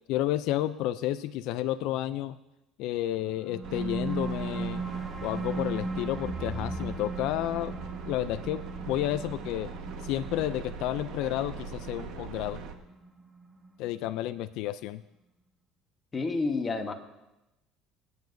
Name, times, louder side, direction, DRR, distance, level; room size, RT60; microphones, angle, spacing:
voice 1, 0.1-2.4 2.8-4.8 5.2-7.8 8.1-9.7 10.0-12.6 13.8-15.0, left 13 dB, 70° left, 12 dB, 0.4 m, -31 dB
sound 1, 3.3-14.3, right 3 dB, 15° right, 0.9 m, -38 dB
sound 2, 3.6-12.7, right 5 dB, 65° right, 1.4 m, -40 dB
voice 2, 16.1-16.9, left 3 dB, 20° left, 4 dB, 1.2 m, -29 dB
25.0 x 9.5 x 2.7 m, 0.95 s
cardioid pair, 135°, 0 cm